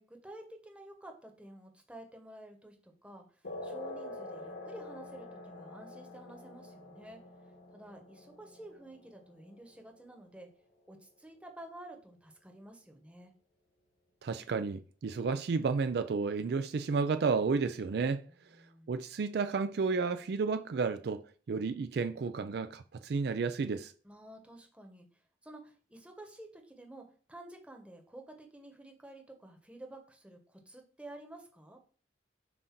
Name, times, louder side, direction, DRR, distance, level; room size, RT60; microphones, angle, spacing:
voice 1, 0.0-7.2 7.7-10.5 10.9-13.3 18.3-18.9 24.0-31.8, right 1 dB, 5° right, 1.0 m, -51 dB
sound 1, 3.4-10.4, left 2 dB, 90° left, 1.4 m, -46 dB
voice 2, 14.2-18.3 18.9-23.9, right 4 dB, 60° right, 0.4 m, -32 dB
7.4 x 2.6 x 5.8 m
head